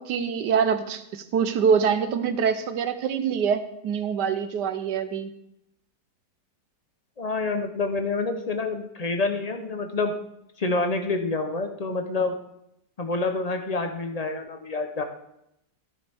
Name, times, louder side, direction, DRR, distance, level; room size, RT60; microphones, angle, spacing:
voice 1, 0.0-5.3, right 6 dB, 70° right, 10 dB, 1.4 m, -25 dB
voice 2, 7.2-10.1 10.6-12.3 13.0-15.0, left 3 dB, 45° left, 5 dB, 0.5 m, -27 dB
14.0 x 9.6 x 3.5 m, 0.81 s
omnidirectional pair, 1.9 m